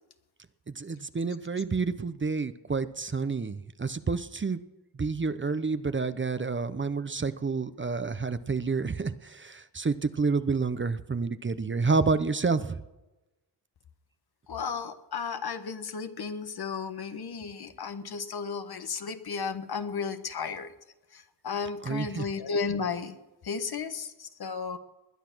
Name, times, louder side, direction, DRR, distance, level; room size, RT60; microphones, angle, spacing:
voice 1, 0.8-4.6 5.0-12.8 21.8-22.2, right 4 dB, 30° right, 12 dB, 0.8 m, -29 dB
voice 2, 14.5-20.7 21.1-23.2 23.4-24.8, left 5 dB, 65° left, 9 dB, 1.4 m, -34 dB
20.5 x 10.0 x 6.2 m, 1.0 s
cardioid pair, 75°, 42 cm